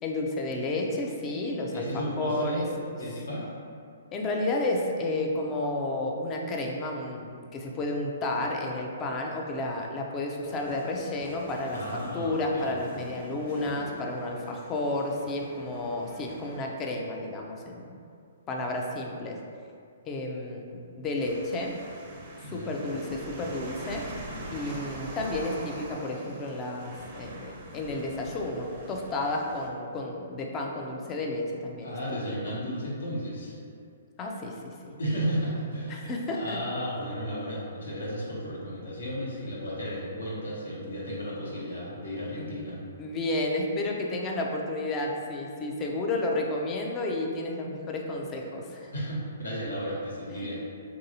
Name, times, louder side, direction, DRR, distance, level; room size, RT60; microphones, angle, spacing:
voice 1, 0.0-2.6 4.1-18.0 18.5-19.4 20.0-21.8 22.4-24.1 24.5-32.6 34.2-35.0 35.9-36.6 42.4-42.5 43.0-48.9 50.3-50.5, left 2 dB, 25° left, 0 dB, 0.4 m, -32 dB
voice 2, 1.7-3.5 11.7-12.7 22.4-22.8 31.8-33.5 35.0-42.8 48.9-50.6, equal, 80° left, -6 dB, 1.0 m, -34 dB
sound 1, 10.4-16.7, left 1 dB, 45° left, 1.1 m, -45 dB
sound 2, 21.2-29.7, right 1 dB, 45° right, 0.5 m, -42 dB
3.2 x 2.6 x 2.8 m, 2.4 s
hypercardioid pair, 130°, 0 cm